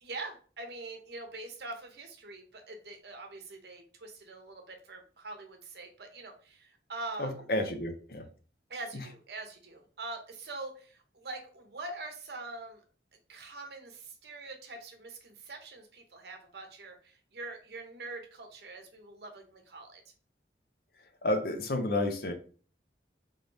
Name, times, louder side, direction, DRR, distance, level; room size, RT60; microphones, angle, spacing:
voice 1, 0.0-7.4 8.7-12.8 13.3-20.0, right 2 dB, 65° right, 4 dB, 0.8 m, -44 dB
voice 2, 7.2-8.2 21.2-22.3, left 2 dB, 55° left, 6 dB, 0.6 m, -30 dB
3.7 x 3.3 x 2.6 m, 0.40 s
head